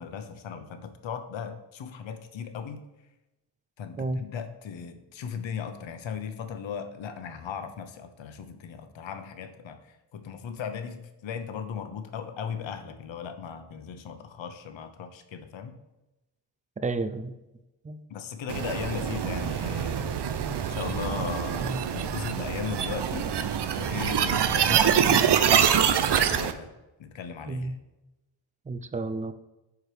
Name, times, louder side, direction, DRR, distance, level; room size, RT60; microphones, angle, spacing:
voice 1, 0.0-2.8 3.8-15.8 18.1-20.2 20.7-23.4 23.7-26.7 27.0-27.8, left 7 dB, 75° left, 8 dB, 0.9 m, -37 dB
voice 2, 16.8-17.3 17.8-18.0 21.6-21.8 27.5-27.7 28.7-29.3, right 3 dB, 15° right, 11 dB, 0.4 m, -31 dB
sound 1, 18.5-26.5, right 8 dB, 60° right, 0.7 m, -25 dB
11.0 x 4.7 x 3.3 m, 1.0 s
cardioid pair, 100°, 46 cm